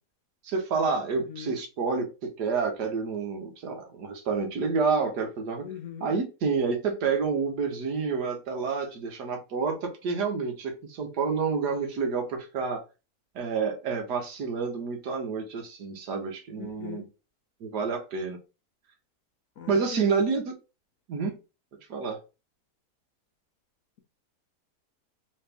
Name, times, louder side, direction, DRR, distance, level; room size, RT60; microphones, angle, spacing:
voice 1, 0.4-5.7 6.0-12.8 13.3-17.0 17.6-18.4 19.7-20.4 21.1-21.3 21.9-22.2, right 5 dB, 80° right, 1.6 m, -29 dB
voice 2, 1.2-1.6 5.6-6.1 16.6-17.1 19.6-20.4, left 9 dB, 65° left, 0.9 m, -40 dB
3.4 x 3.1 x 3.3 m
omnidirectional pair, 1.7 m